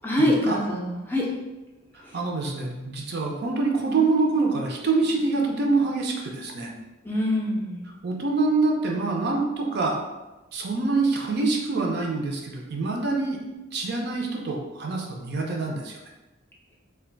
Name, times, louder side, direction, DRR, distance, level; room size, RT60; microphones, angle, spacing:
voice 1, 0.0-1.3 7.0-7.8, left 1 dB, 10° left, -4 dB, 0.5 m, -24 dB
voice 2, 1.9-6.7 8.0-10.0 10.5-13.4 13.7-16.0, right 3 dB, 55° right, 0 dB, 0.5 m, -25 dB
2.4 x 2.2 x 3.8 m, 1.1 s
head